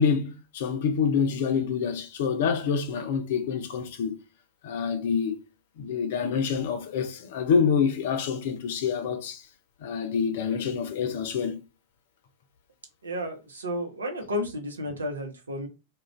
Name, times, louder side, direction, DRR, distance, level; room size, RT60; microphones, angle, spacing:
voice 1, 0.0-4.2 4.6-5.4 5.8-9.5 9.8-11.6, left 6 dB, 55° left, 0.5 m, -27 dB
voice 2, 13.0-15.7, left 1 dB, 75° right, 0.7 m, -32 dB
2.4 x 2.2 x 3.0 m
figure-of-eight pair, 90°, 0 cm